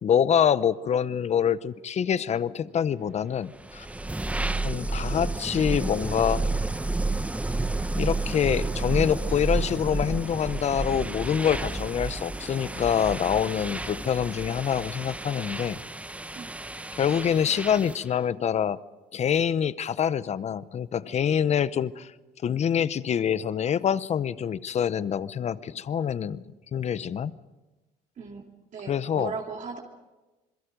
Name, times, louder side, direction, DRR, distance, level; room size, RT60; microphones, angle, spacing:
voice 1, 0.0-3.9 4.6-6.4 8.0-15.8 17.0-18.8 19.1-22.1 22.4-26.4 26.7-27.4 28.9-29.3, left 8 dB, 40° left, 16 dB, 0.8 m, -26 dB
sound 1, 3.5-18.1, right 2 dB, 10° right, 0.8 m, -31 dB
voice 2, 28.7-29.8, right 5 dB, 50° right, 0 dB, 2.7 m, -37 dB
27.0 x 22.0 x 5.2 m, 1.1 s
cardioid pair, 110°, 17 cm